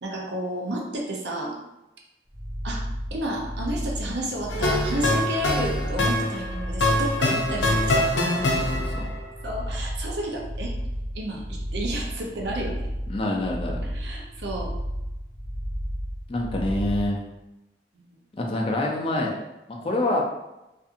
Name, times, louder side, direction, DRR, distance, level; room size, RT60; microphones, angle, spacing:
voice 1, 0.0-1.6 2.6-2.8 3.1-8.1 8.6-8.7 9.4-10.7 11.1-12.9 13.9-14.7 17.9-18.2, right 1 dB, 70° right, -1 dB, 0.6 m, -31 dB
sound 1, 2.3-17.1, equal, 50° right, 1.1 m, -32 dB
sound 2, 4.5-9.2, left 1 dB, 90° left, 0.5 m, -24 dB
voice 2, 8.4-9.1 13.1-13.8 16.3-17.2 18.4-19.4 19.8-20.2, left 1 dB, 30° left, 0 dB, 0.4 m, -26 dB
2.7 x 2.5 x 2.4 m, 0.96 s
head